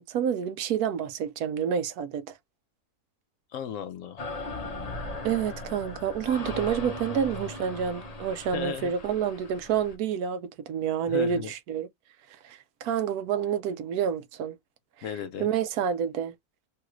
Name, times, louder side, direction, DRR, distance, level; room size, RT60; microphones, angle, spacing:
voice 1, 0.0-2.3 5.2-11.9 12.4-14.6 15.4-16.3, right 8 dB, 80° right, 1.1 m, -28 dB
voice 2, 3.5-4.3 8.5-8.9 11.1-11.5 15.0-15.5, left 8 dB, 70° left, 0.8 m, -35 dB
sound 1, 4.2-9.9, left 2 dB, 35° left, 0.6 m, -38 dB
3.2 x 2.4 x 2.9 m
omnidirectional pair, 1.6 m